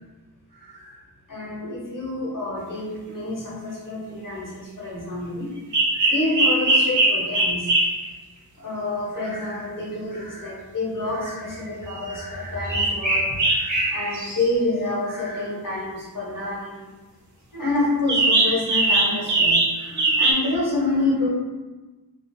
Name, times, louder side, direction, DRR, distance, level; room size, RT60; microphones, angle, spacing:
voice 1, 0.6-1.0 1.3-5.5 6.1-7.7 8.6-16.8 17.5-21.3, left 2 dB, 55° left, -6 dB, 1.1 m, -28 dB
sound 1, 5.7-8.1 11.3-11.4 12.0-12.1 12.4-14.5 18.1-20.3, right 2 dB, 50° right, 0.6 m, -20 dB
2.5 x 2.4 x 2.6 m, 1.2 s
wide cardioid pair, 80°, 37 cm